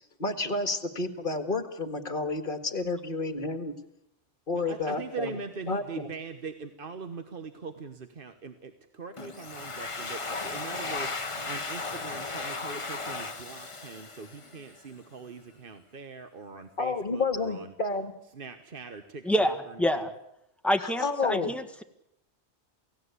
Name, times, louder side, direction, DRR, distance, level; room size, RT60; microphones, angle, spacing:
voice 1, 0.2-3.7 4.5-5.4 5.7-6.1 16.8-18.1 20.8-21.5, left 3 dB, 50° left, 9 dB, 2.0 m, -30 dB
voice 2, 4.5-17.7 18.3-20.1, right 4 dB, 50° right, 8 dB, 1.4 m, -41 dB
Domestic sounds home sounds, 9.2-14.8, left 3 dB, 30° left, 1.2 m, -36 dB
voice 3, 19.2-20.1 20.6-21.8, equal, ahead, 6 dB, 1.6 m, -27 dB
28.0 x 17.0 x 8.3 m, 0.81 s
omnidirectional pair, 1.2 m